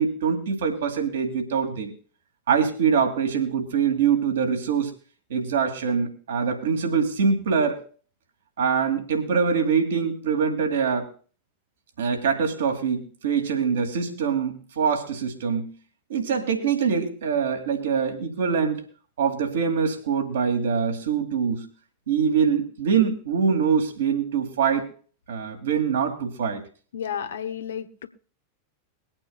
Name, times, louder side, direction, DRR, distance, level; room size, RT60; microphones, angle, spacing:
voice 1, 0.0-1.9 2.5-4.9 5.3-7.9 8.6-11.1 12.0-15.7 16.1-18.8 19.2-21.7 22.1-24.9 25.3-26.6, right 6 dB, 65° right, 4 dB, 2.4 m, -24 dB
voice 2, 26.9-28.1, left 8 dB, 65° left, 8 dB, 1.2 m, -32 dB
23.0 x 8.8 x 2.4 m, 0.39 s
figure-of-eight pair, 90°, 0 cm